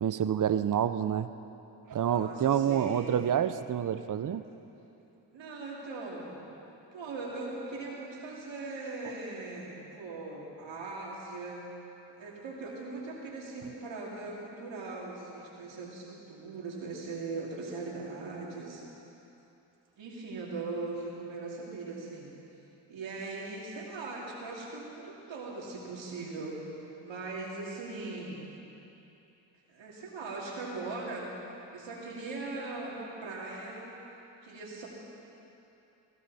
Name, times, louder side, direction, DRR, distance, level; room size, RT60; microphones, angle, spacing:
voice 1, 0.0-1.3 1.9-4.4, right 9 dB, 45° right, 12 dB, 0.7 m, -28 dB
voice 2, 2.1-3.1 5.3-6.4 6.9-11.7 12.2-18.8 20.0-22.3 22.9-26.7 27.0-28.4 29.7-31.4 31.7-33.9 34.4-34.9, right 3 dB, 75° right, -3 dB, 2.9 m, -40 dB
19.0 x 15.0 x 4.3 m, 2.9 s
supercardioid pair, 45°, 45 cm